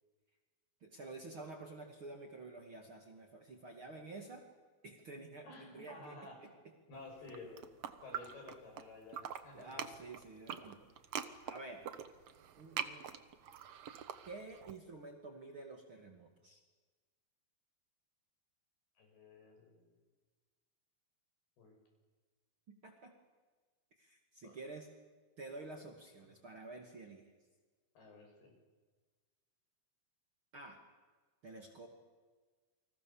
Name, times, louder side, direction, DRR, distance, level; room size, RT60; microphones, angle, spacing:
voice 1, 0.8-4.4 4.8-6.5 9.5-10.8 11.4-11.9 12.6-13.1 14.3-16.6 22.7-23.1 24.0-24.9 25.4-27.3 30.5-30.8 31.4-31.9, right 3 dB, 40° right, 2 dB, 2.5 m, -50 dB
voice 2, 5.4-6.6 6.9-7.6 8.0-9.8 19.0-19.9 21.6-21.8 24.4-24.5 28.0-28.6, left 2 dB, 70° left, 2 dB, 8.6 m, -53 dB
sound 1, 7.2-8.8 9.1-14.7, right 9 dB, 80° right, 1.4 m, -44 dB
30.0 x 24.5 x 7.2 m, 1.4 s
omnidirectional pair, 4.7 m